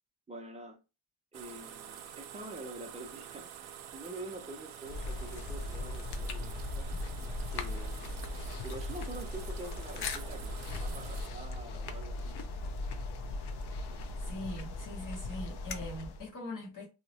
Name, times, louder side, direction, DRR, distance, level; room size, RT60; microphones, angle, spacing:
voice 1, 0.3-0.8 1.3-3.5 3.9-6.9 7.5-8.3 8.6-12.5, right 2 dB, 15° right, 0.4 m, -46 dB
sound 1, 1.3-11.3, right 9 dB, 80° right, 0.6 m, -48 dB
sound 2, 4.8-16.3, left 2 dB, 60° left, 0.5 m, -38 dB
sound 3, 5.1-14.4, right 1 dB, 85° left, 0.9 m, -52 dB
voice 2, 14.2-16.9, left 1 dB, 40° left, 1.0 m, -42 dB
2.3 x 2.1 x 3.9 m
wide cardioid pair, 165°, 47 cm